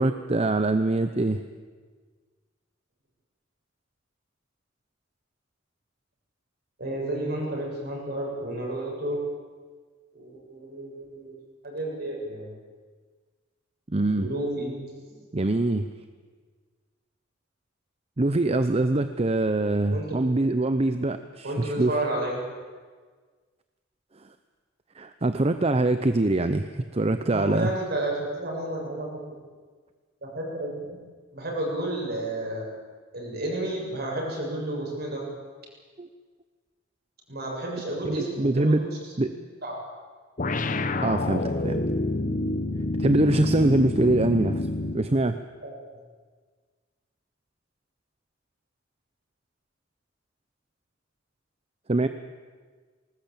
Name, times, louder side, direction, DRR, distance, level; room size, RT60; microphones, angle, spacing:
voice 1, 0.0-1.4 13.9-14.3 15.3-15.9 18.2-22.0 24.9-27.7 36.0-36.1 38.0-38.8 39.2-39.3 41.0-41.8 43.0-44.7 44.9-45.4 51.9-52.1, right 2 dB, 30° right, 9 dB, 0.7 m, -23 dB
voice 2, 6.8-9.2 10.1-11.3 11.6-12.5 14.2-15.2 15.7-15.9 19.9-20.1 21.4-22.4 27.3-29.2 30.2-31.0 31.3-32.6 33.1-35.3 37.3-38.9 39.2-39.3 39.6-39.7 45.6-45.7, right 1 dB, 55° right, -1 dB, 7.2 m, -31 dB
sound 1, 40.4-45.1, left 2 dB, 45° left, 1.0 m, -28 dB
19.5 x 19.5 x 8.7 m, 1.5 s
head